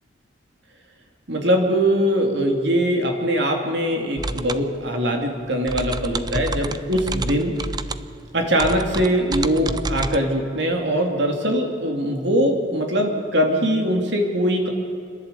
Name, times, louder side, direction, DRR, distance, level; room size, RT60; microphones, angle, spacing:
voice 1, 1.3-7.6 8.3-14.7, equal, 60° right, 2 dB, 2.8 m, -22 dB
sound 1, 4.2-10.2, right 3 dB, 20° right, 0.5 m, -30 dB
29.5 x 11.0 x 8.3 m, 2.5 s
head